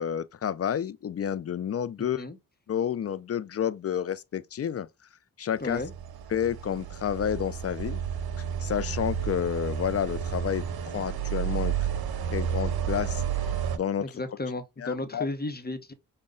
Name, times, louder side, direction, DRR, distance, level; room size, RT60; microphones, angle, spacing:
voice 1, 0.0-2.2 2.7-4.9 5.4-5.8 6.3-8.0 8.6-10.6 10.9-11.7 12.3-13.2 13.7-14.1 14.8-15.3, left 9 dB, 40° left, 0.4 m, -30 dB
voice 2, 2.0-2.4 5.6-5.9 14.0-15.9, left 2 dB, 25° left, 0.9 m, -34 dB
sound 1, 5.7-13.8, right 8 dB, 75° right, 0.7 m, -31 dB
5.3 x 2.2 x 3.7 m
cardioid pair, 45°, 37 cm